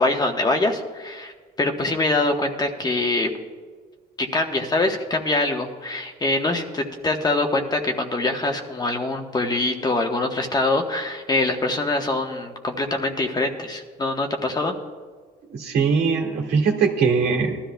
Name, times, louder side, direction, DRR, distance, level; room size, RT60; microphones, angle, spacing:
voice 1, 0.0-1.3 1.6-3.3 4.2-14.7, left 2 dB, 25° left, 3 dB, 1.2 m, -24 dB
voice 2, 15.5-17.6, right 5 dB, 75° right, 1 dB, 2.0 m, -21 dB
20.0 x 13.0 x 2.3 m, 1.5 s
cardioid pair, 110°, 17 cm